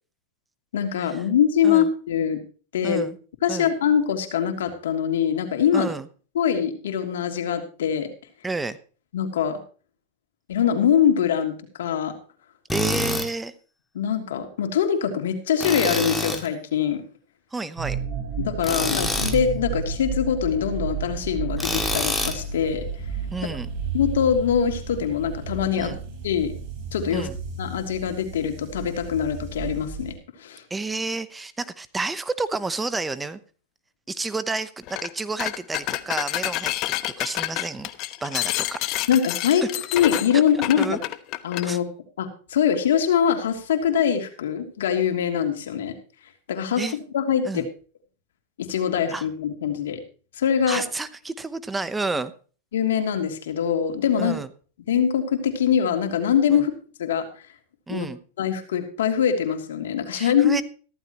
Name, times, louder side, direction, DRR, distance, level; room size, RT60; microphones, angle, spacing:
voice 1, 0.7-2.4 2.7-3.0 3.4-5.9 6.3-8.1 9.1-9.6 10.5-12.1 13.9-17.0 18.4-22.9 23.9-25.9 26.2-26.5 26.9-27.3 27.6-30.6 39.1-39.6 39.9-41.0 41.4-41.9 42.2-45.9 46.5-46.8 47.1-47.6 48.6-50.0 50.4-50.8 52.7-54.4 54.9-56.7 57.0-57.3 57.9-58.1 58.4-60.6, left 8 dB, 85° left, 6 dB, 2.8 m, -23 dB
voice 2, 2.8-3.2 3.5-3.7 5.7-6.1 8.4-8.8 12.7-13.5 17.5-18.0 23.3-23.7 25.8-26.0 27.1-27.4 30.7-33.4 34.1-36.7 37.2-38.8 39.6-39.7 40.3-40.4 40.8-41.0 41.6-41.8 46.8-47.0 47.4-47.7 49.1-49.3 50.7-52.3 54.2-54.5 56.5-56.7 57.9-58.2 60.1-60.6, right 3 dB, 10° right, 14 dB, 0.9 m, -30 dB
Tools, 12.7-13.3 15.6-16.5 18.6-19.4 21.6-22.4, left 2 dB, 5° left, 2.3 m, -26 dB
sound 1, 17.8-30.1, right 5 dB, 40° right, 5.6 m, -32 dB
sound 2, 34.9-35.1 35.4-41.7, left 16 dB, 45° left, 1.0 m, -28 dB
15.0 x 14.0 x 3.0 m, 0.39 s
supercardioid pair, 130°, 0 cm